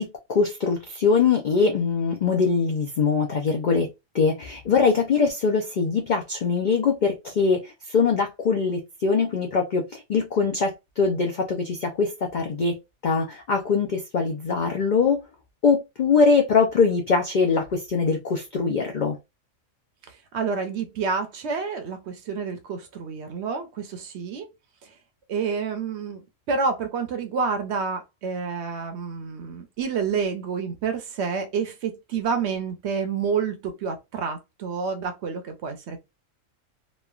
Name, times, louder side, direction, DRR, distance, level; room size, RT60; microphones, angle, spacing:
voice 1, 0.0-3.9 4.1-12.7 13.0-15.2 15.6-19.2, left 5 dB, 65° left, 0.4 m, -22 dB
voice 2, 20.1-24.5 24.8-24.9 25.3-26.2 26.5-36.0, right 5 dB, 65° right, 0.8 m, -29 dB
3.0 x 2.2 x 2.3 m
omnidirectional pair, 1.4 m